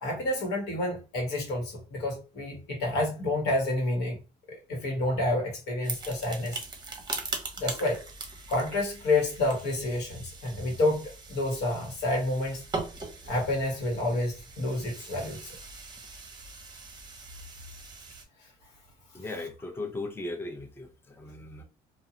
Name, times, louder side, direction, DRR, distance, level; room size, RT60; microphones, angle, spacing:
voice 1, 0.0-4.2 4.7-6.6 7.6-8.0 8.5-12.6 13.2-15.5, left 2 dB, 80° left, 1.4 m, -29 dB
sound 1, 5.8-18.2, right 3 dB, 25° right, 0.7 m, -41 dB
voice 2, 19.1-21.6, left 2 dB, 15° left, 0.6 m, -37 dB
2.6 x 2.4 x 2.7 m
cardioid pair, 110°, 17 cm